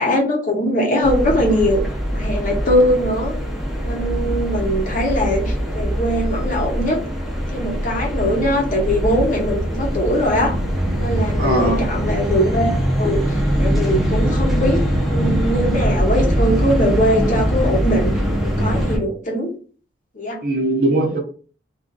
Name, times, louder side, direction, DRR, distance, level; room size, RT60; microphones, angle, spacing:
voice 1, 0.0-1.8 2.1-3.3 3.8-7.0 7.5-10.6 11.0-12.7 13.0-19.5 20.2-20.4, equal, 45° left, -1 dB, 0.8 m, -21 dB
sound 1, 1.0-19.0, equal, ahead, 0.7 m, -22 dB
voice 2, 11.4-11.9 20.4-21.2, right 2 dB, 55° right, 1 dB, 0.8 m, -20 dB
2.8 x 2.4 x 3.7 m, 0.39 s
head